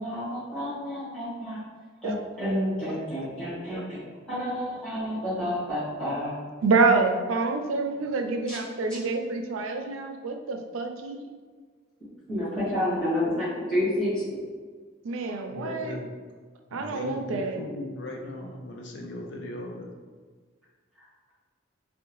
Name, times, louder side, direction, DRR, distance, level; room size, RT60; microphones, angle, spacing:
voice 1, 0.0-1.6 2.0-4.0 4.3-6.3 8.5-8.6 12.3-14.1, left 1 dB, 5° left, -14 dB, 1.5 m, -29 dB
voice 2, 6.6-11.2 15.0-16.0 16.7-17.6, right 3 dB, 90° right, 5 dB, 0.4 m, -27 dB
voice 3, 15.5-16.1 16.8-19.9, left 1 dB, 60° left, 1 dB, 0.5 m, -37 dB
3.5 x 2.2 x 3.0 m, 1.5 s
head